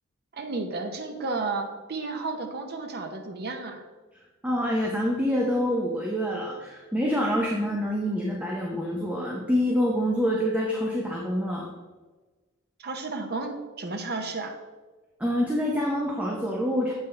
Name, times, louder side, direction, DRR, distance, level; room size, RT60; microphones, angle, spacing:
voice 1, 0.3-3.8 12.8-14.5, right 3 dB, 50° right, 4 dB, 0.8 m, -32 dB
voice 2, 4.4-11.7 15.2-16.9, equal, 5° right, -2 dB, 0.7 m, -26 dB
7.4 x 5.5 x 3.3 m, 1.3 s
head